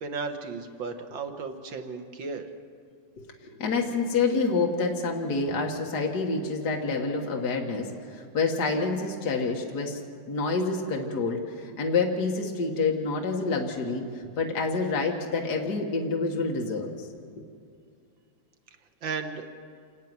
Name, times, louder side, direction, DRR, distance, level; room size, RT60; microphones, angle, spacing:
voice 1, 0.0-2.5 19.0-19.5, right 4 dB, 75° right, 6 dB, 1.9 m, -34 dB
voice 2, 3.2-10.0 10.3-16.9 17.4-17.5, left 4 dB, 55° left, 1 dB, 2.2 m, -28 dB
27.5 x 10.5 x 9.6 m, 2.3 s
omnidirectional pair, 2.2 m